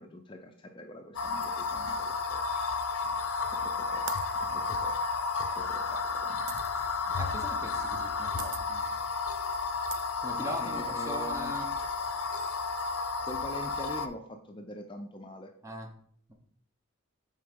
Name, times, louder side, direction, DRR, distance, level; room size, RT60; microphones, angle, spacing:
voice 1, 0.0-2.4 2.9-3.0 3.5-4.1 4.5-5.0 5.3-6.6 10.3-11.5 13.2-15.5, left 1 dB, 25° left, 4 dB, 0.5 m, -44 dB
sound 1, 1.1-14.1, left 4 dB, 75° left, 0.6 m, -32 dB
voice 2, 1.7-2.0 3.0-3.1 4.5-4.7 6.3-6.4 7.0-8.9 10.2-11.7 15.6-15.9, equal, 15° right, 3 dB, 1.0 m, -41 dB
sound 2, 3.0-3.5 4.1-6.7 7.8-8.1 8.4-8.6 9.2-9.3 9.9-10.9, right 10 dB, 90° right, 0.5 m, -43 dB
6.4 x 3.8 x 5.2 m, 0.63 s
head